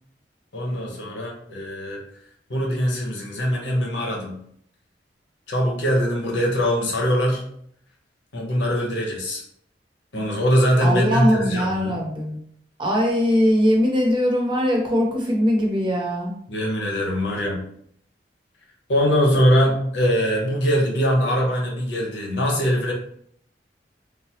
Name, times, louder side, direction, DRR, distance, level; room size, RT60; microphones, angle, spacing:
voice 1, 0.5-2.0 2.5-4.4 5.5-7.4 8.3-9.4 10.1-11.9 16.5-17.6 18.9-22.9, equal, 80° left, 0 dB, 0.8 m, -22 dB
voice 2, 10.8-12.4 12.8-16.4, equal, 25° right, -1 dB, 0.7 m, -21 dB
3.3 x 2.0 x 2.7 m, 0.66 s
head